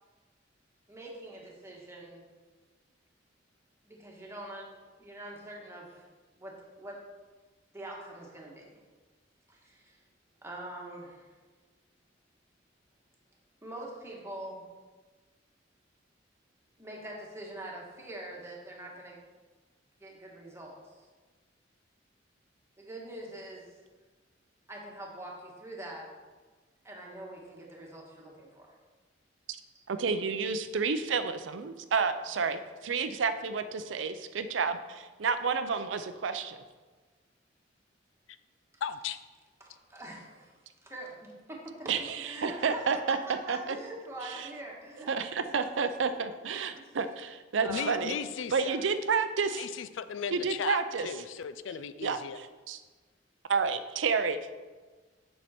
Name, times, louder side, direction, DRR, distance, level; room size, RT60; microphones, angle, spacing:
voice 1, 0.9-2.2 3.8-6.0 6.3-7.0 7.7-8.8 9.5-10.0 10.4-11.3 13.6-14.6 16.8-19.2 20.0-21.1 22.8-23.7 24.7-26.1 26.8-28.8 39.6-40.5 40.8-43.0 43.3-45.3 45.6-45.7 46.0-46.1 46.8-46.9 47.6-48.0 48.6-48.8, right 1 dB, 15° right, -2 dB, 1.5 m, -44 dB
voice 2, 29.9-36.6 41.9-43.2 43.5-43.8 44.2-44.5 45.1-48.2 48.5-49.7 50.3-51.1 52.0-52.8 53.5-54.4, right 5 dB, 80° right, 10 dB, 0.5 m, -30 dB
voice 3, 38.8-39.2 47.7-48.5 49.6-50.8 51.0-52.4, left 7 dB, 85° left, 13 dB, 0.4 m, -36 dB
7.4 x 6.6 x 4.3 m, 1.4 s
head